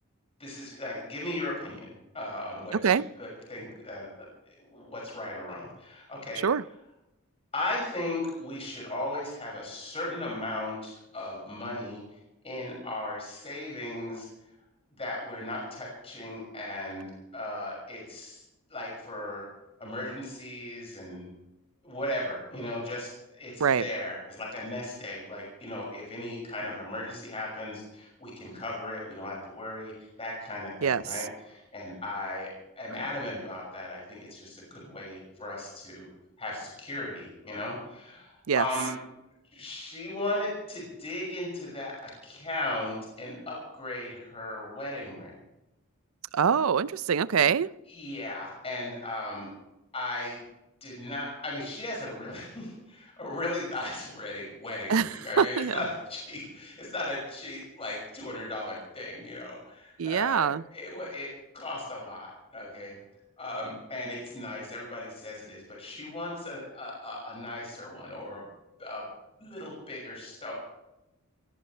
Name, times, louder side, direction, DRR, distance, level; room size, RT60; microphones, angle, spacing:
voice 1, 0.4-6.5 7.5-12.0 12.4-14.3 15.0-17.1 17.3-18.4 18.7-19.5 19.8-21.3 21.8-29.9 30.2-36.1 36.4-38.9 39.5-45.4 47.9-49.5 49.9-50.4 50.8-62.9 63.4-68.5 68.8-69.1 69.4-70.5, left 1 dB, 30° left, -2 dB, 6.4 m, -37 dB
voice 2, 46.3-47.7 54.9-55.1 55.4-55.8 60.0-60.6, right 7 dB, 75° right, 18 dB, 0.5 m, -24 dB
23.0 x 17.5 x 3.3 m, 0.93 s
head